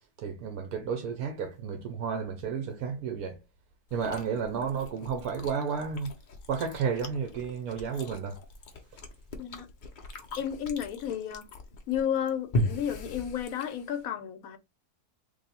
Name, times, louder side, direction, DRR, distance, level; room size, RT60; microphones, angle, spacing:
voice 1, 0.2-3.4 3.9-6.2 6.5-8.4, right 6 dB, 75° right, 1.2 m, -32 dB
Chewing mastication, 3.9-14.1, left 1 dB, 50° left, 0.5 m, -38 dB
voice 2, 10.4-11.4 11.9-14.6, left 9 dB, 70° left, 1.0 m, -32 dB
3.1 x 2.6 x 4.1 m
omnidirectional pair, 1.6 m